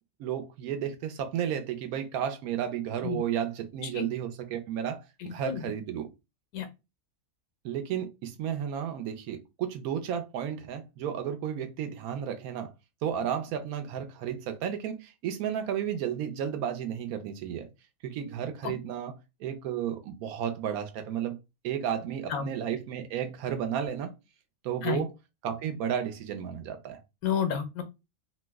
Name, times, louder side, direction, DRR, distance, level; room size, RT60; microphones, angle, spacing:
voice 1, 0.2-6.1 7.6-12.7 13.0-17.7 18.0-19.1 19.4-21.4 21.6-24.1 24.6-25.1 25.4-27.0, right 9 dB, 85° right, 1.1 m, -33 dB
voice 2, 5.2-5.6 6.5-6.7 18.6-18.7 22.3-22.5 24.8-25.0 27.2-27.8, left 8 dB, 85° left, 1.2 m, -30 dB
3.0 x 2.1 x 3.3 m
omnidirectional pair, 1.5 m